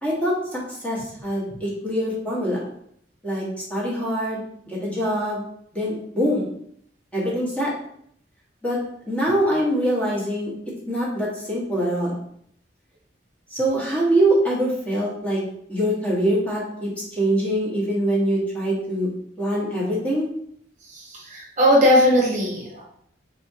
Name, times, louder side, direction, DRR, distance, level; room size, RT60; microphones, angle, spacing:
voice 1, 0.0-2.6 3.2-5.4 5.7-6.5 7.1-7.7 8.6-8.8 9.1-10.5 10.9-12.2 13.5-15.4 15.7-19.1 19.4-20.3, right 1 dB, 10° left, -7 dB, 1.3 m, -24 dB
voice 2, 21.3-22.8, equal, 40° right, -3 dB, 0.9 m, -18 dB
4.3 x 3.5 x 2.8 m, 0.69 s
head